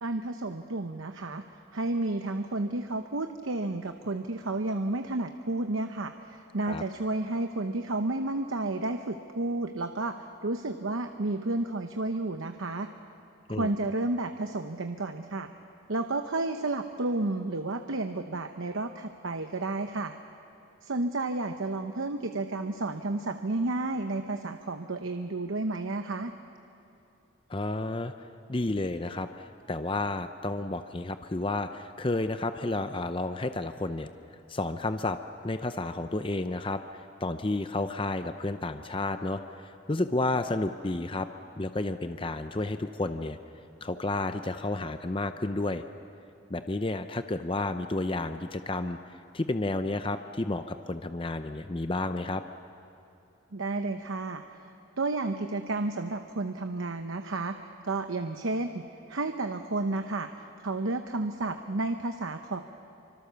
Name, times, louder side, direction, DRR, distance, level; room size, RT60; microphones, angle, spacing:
voice 1, 0.0-1.4 1.7-10.2 10.4-12.9 13.5-15.5 15.9-20.1 20.8-26.3 53.5-54.4 55.0-62.6, right 2 dB, 90° right, 7 dB, 0.9 m, -31 dB
voice 2, 27.5-28.1 28.5-34.1 34.5-41.3 41.6-43.4 43.8-45.8 46.5-49.0 49.3-52.4, left 2 dB, 25° left, 9 dB, 0.6 m, -31 dB
26.5 x 25.0 x 7.0 m, 2.8 s
head